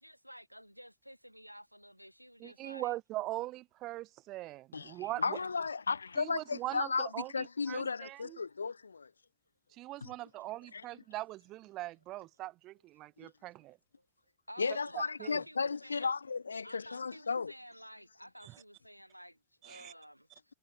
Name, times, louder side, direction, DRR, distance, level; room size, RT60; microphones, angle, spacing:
voice 1, 0.0-3.0 5.2-5.6 14.0-14.1 14.5-16.1 16.6-20.6, equal, 90° right, 3.9 m, -51 dB
voice 2, 2.4-5.4 6.2-8.4 9.7-13.8 15.0-15.4 18.4-18.6 19.6-19.9, right 17 dB, 35° right, 0.5 m, -41 dB
voice 3, 4.7-9.1 10.0-10.1 10.7-10.8 13.2-13.3 14.6-17.5, left 5 dB, 75° left, 0.4 m, -35 dB
figure-of-eight pair, 90°, 0 cm